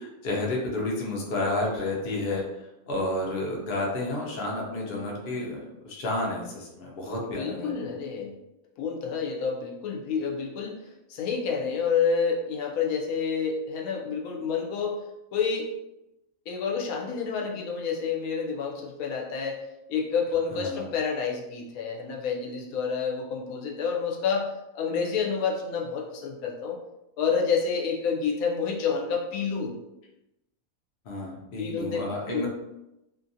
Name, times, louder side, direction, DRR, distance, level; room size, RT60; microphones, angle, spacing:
voice 1, 0.2-2.4 2.9-7.7 20.5-20.9 31.1-32.5, left 2 dB, 55° left, -2 dB, 0.7 m, -30 dB
voice 2, 7.2-8.4 8.8-10.8 11.1-15.7 16.5-19.6 19.9-26.8 27.2-29.8 31.6-32.0 32.3-32.5, left 6 dB, 80° left, 0 dB, 1.0 m, -29 dB
2.7 x 2.5 x 2.6 m, 0.92 s
omnidirectional pair, 1.5 m